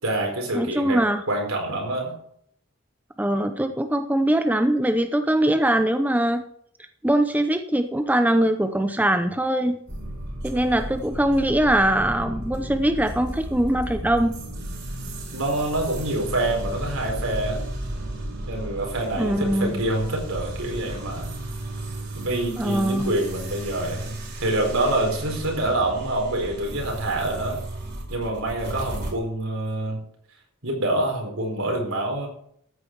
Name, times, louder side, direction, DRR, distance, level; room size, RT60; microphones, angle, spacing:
voice 1, 0.0-1.0 1.3-2.2 15.3-17.6 18.5-21.3 22.1-27.6 28.1-30.0 30.6-32.3, right 1 dB, 75° right, 1 dB, 4.6 m, -26 dB
voice 2, 0.5-1.2 3.2-6.4 7.0-9.8 10.4-14.3 19.2-19.8 22.6-23.1, right 1 dB, 10° right, 8 dB, 0.6 m, -22 dB
sound 1, 9.9-29.1, right 1 dB, 55° right, 4.5 m, -34 dB
14.0 x 9.4 x 4.6 m, 0.67 s
head